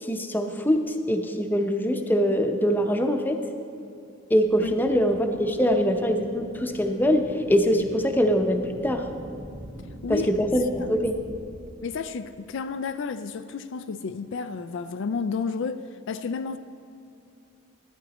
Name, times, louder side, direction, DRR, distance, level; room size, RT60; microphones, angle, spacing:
voice 1, 0.0-3.5 4.3-9.1 10.1-11.2, equal, 10° left, 0.7 m, -23 dB
sound 1, 4.4-11.6, right 1 dB, 70° right, 2.0 m, -44 dB
voice 2, 11.8-16.6, left 5 dB, 65° left, 0.4 m, -31 dB
13.5 x 9.7 x 4.2 m
head